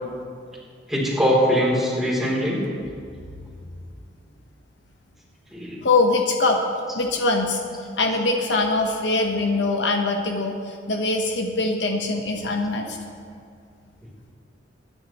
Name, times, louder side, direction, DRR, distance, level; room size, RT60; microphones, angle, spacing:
voice 1, 0.9-2.6 5.5-5.8, equal, ahead, -6 dB, 3.4 m, -21 dB
voice 2, 5.8-6.6 6.9-7.6 8.0-13.0, left 3 dB, 70° left, 2 dB, 1.2 m, -22 dB
24.0 x 10.0 x 3.1 m, 2.3 s
head